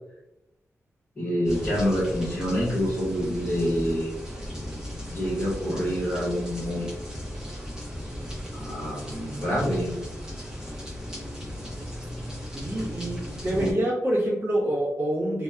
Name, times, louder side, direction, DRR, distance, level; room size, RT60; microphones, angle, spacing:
voice 1, 1.2-4.1 5.1-6.9 8.5-9.9, equal, 30° left, -10 dB, 0.9 m, -27 dB
sound 1, 1.4-13.7, equal, 10° right, 0.7 m, -36 dB
voice 2, 12.5-15.4, right 1 dB, 45° right, -5 dB, 1.0 m, -26 dB
2.7 x 2.0 x 2.3 m, 0.88 s
wide cardioid pair, 135°, 5 cm